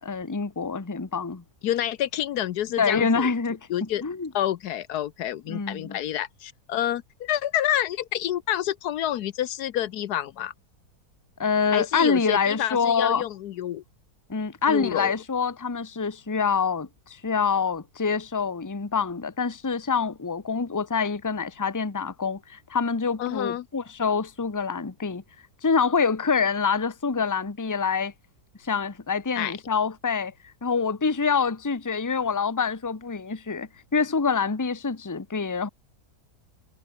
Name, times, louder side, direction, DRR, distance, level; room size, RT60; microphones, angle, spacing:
voice 1, 0.0-1.4 2.8-4.3 5.5-6.0 11.4-13.2 14.3-25.2 25.6-28.1 28.6-30.3 30.6-35.7, left 5 dB, 15° left, 0.9 m, -26 dB
voice 2, 1.6-3.3 3.7-4.0 4.3-10.5 11.7-13.8 14.7-15.1 23.2-23.7 29.4-29.6, left 12 dB, 75° left, 1.2 m, -28 dB
omnidirectional pair, 1.7 m